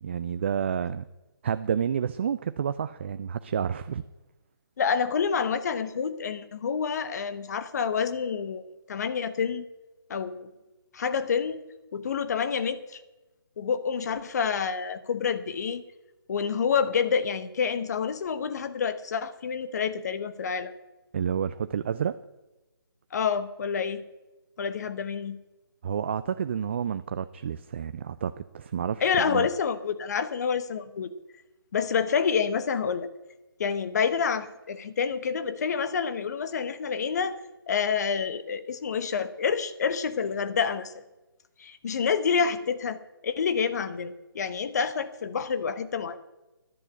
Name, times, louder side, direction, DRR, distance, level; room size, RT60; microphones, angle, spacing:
voice 1, 0.0-1.0 1.4-4.0 21.1-22.2 25.8-29.5, right 8 dB, 30° right, 13 dB, 0.3 m, -30 dB
voice 2, 4.8-9.6 10.1-10.5 10.9-11.6 11.9-13.0 13.6-15.8 16.3-20.7 23.1-24.0 24.6-25.4 29.0-31.1 31.7-33.1 33.6-37.4 37.7-40.9 41.6-43.0 43.2-46.2, left 6 dB, 45° left, 12 dB, 1.1 m, -28 dB
11.0 x 8.4 x 8.9 m, 1.0 s
figure-of-eight pair, 155°, 13 cm